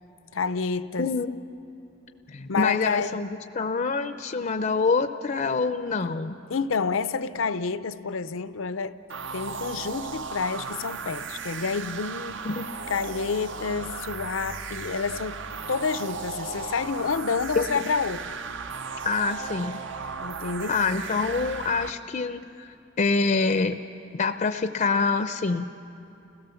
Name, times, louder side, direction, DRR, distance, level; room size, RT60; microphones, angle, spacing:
voice 1, 0.3-1.1 2.5-3.3 6.5-8.9 9.3-12.4 12.9-15.4 15.7-18.4 20.2-20.8, left 5 dB, 85° left, 0.6 m, -29 dB
voice 2, 1.0-1.3 2.3-3.3 3.5-6.4 12.4-12.6 17.6-17.9 19.0-19.8 20.7-23.8 24.1-25.7, left 4 dB, 40° left, 0.5 m, -26 dB
sound 1, 9.1-21.9, right 5 dB, 65° right, 0.7 m, -36 dB
30.0 x 16.5 x 7.0 m
head